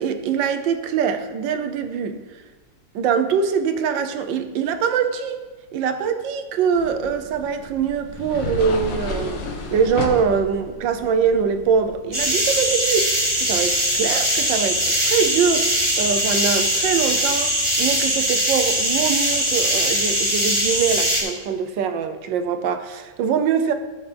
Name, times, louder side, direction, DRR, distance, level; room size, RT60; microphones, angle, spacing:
voice 1, 0.0-2.2 2.9-5.4 5.7-9.4 9.7-23.7, right 6 dB, 85° right, 8 dB, 1.5 m, -23 dB
sound 1, 6.7-12.2, left 3 dB, 85° left, 1.8 m, -32 dB
sound 2, 12.1-21.2, equal, 10° right, 2.3 m, -21 dB
13.5 x 6.9 x 3.4 m, 1.2 s
omnidirectional pair, 2.0 m